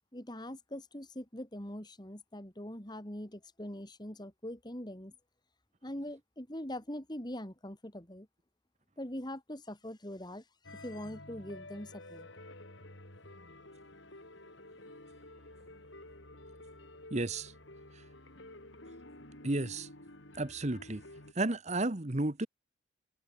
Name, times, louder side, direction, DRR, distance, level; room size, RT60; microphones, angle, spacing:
voice 1, 0.1-5.1 5.8-8.3 9.0-12.3, left 1 dB, 20° left, 3.1 m, -43 dB
sound 1, 10.6-21.3, left 1 dB, 65° left, 5.5 m, -51 dB
voice 2, 17.1-17.5 19.4-19.9 20.3-21.0 21.3-22.5, right 2 dB, 35° right, 1.2 m, -32 dB
head